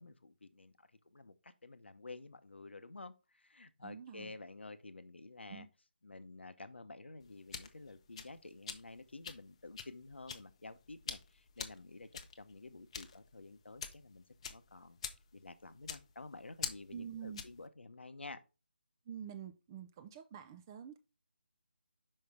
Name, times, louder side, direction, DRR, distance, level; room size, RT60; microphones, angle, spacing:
voice 1, 0.0-5.7 6.0-12.1 12.4-15.0 15.3-18.4, left 3 dB, 75° left, 0.8 m, -51 dB
voice 2, 3.8-4.3 5.5-5.7 16.9-17.4 19.1-21.0, right 8 dB, 20° right, 0.5 m, -47 dB
sound 1, 7.2-17.7, left 7 dB, 30° left, 0.7 m, -47 dB
5.5 x 5.3 x 3.5 m
figure-of-eight pair, 155°, 6 cm